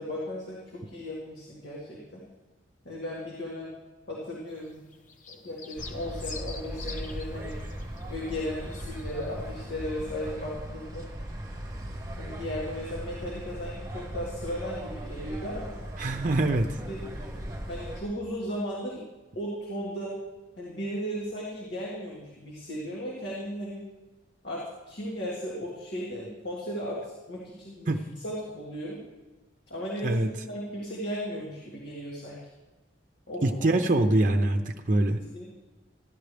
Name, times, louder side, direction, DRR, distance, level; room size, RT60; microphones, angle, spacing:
voice 1, 0.0-2.2 2.9-3.7 4.1-4.8 5.3-7.6 8.1-11.1 12.2-15.7 16.9-17.0 17.7-19.0 19.4-20.1 20.6-23.8 24.4-27.0 27.3-28.0 28.2-29.0 29.7-30.2 30.5-32.4 33.3-33.7 35.1-35.4, equal, 65° left, -5 dB, 2.1 m, -36 dB
sound 1, 4.5-9.6 9.9-10.1, left 5 dB, 45° left, 1.0 m, -46 dB
sound 2, 5.8-18.0, right 1 dB, 20° right, 1.2 m, -38 dB
voice 2, 16.0-16.7 27.9-28.0 30.0-30.3 33.4-35.2, right 2 dB, 45° right, 4 dB, 0.6 m, -24 dB
14.5 x 10.5 x 3.4 m, 1.2 s
head